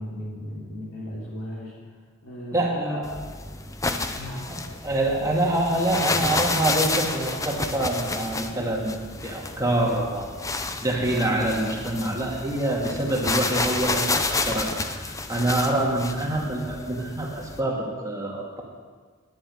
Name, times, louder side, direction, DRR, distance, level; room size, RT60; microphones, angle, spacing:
voice 1, 0.0-1.7 2.2-3.2 4.1-4.5, left 1 dB, 70° left, -5 dB, 3.1 m, -35 dB
voice 2, 2.5-3.1 4.5-8.9 9.2-10.3 10.8-18.6, right 1 dB, 15° right, -2 dB, 2.1 m, -26 dB
sound 1, 3.0-17.6, left 3 dB, 15° left, 0.6 m, -30 dB
10.5 x 7.4 x 8.8 m, 1.5 s
head